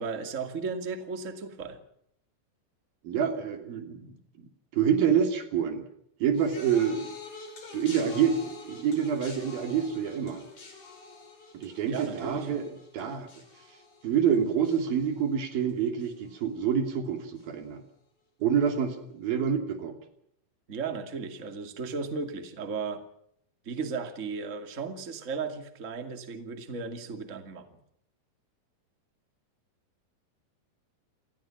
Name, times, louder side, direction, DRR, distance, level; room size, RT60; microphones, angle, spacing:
voice 1, 0.0-1.8 11.8-12.5 20.7-23.0 23.6-27.7, right 5 dB, 25° right, 8 dB, 2.2 m, -35 dB
voice 2, 3.0-4.5 4.7-5.8 6.2-7.1 7.7-10.4 11.5-13.3 14.0-17.8 18.4-20.0, right 7 dB, 85° right, 7 dB, 4.7 m, -27 dB
sound 1, 6.3-15.7 16.0-16.5 17.4-17.5, left 4 dB, 55° left, 6.5 m, -47 dB
28.5 x 19.5 x 6.0 m, 0.70 s
omnidirectional pair, 4.1 m